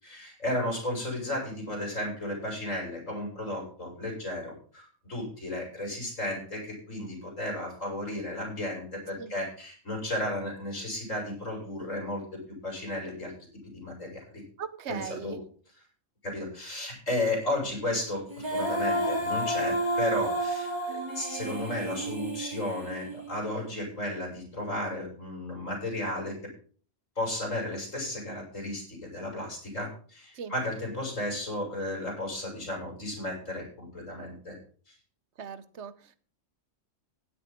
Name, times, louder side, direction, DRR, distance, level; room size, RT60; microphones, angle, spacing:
voice 1, 0.0-12.2 12.5-13.3 13.7-14.4 14.9-15.4 16.2-26.3 27.2-34.6, left 1 dB, 80° left, -1 dB, 6.8 m, -34 dB
voice 2, 14.6-15.4 30.3-30.5 35.4-36.2, right 7 dB, 65° right, 13 dB, 1.1 m, -39 dB
Female singing, 18.3-23.5, right 1 dB, 20° right, 2.6 m, -31 dB
16.0 x 10.0 x 3.7 m, 0.42 s
omnidirectional pair, 1.3 m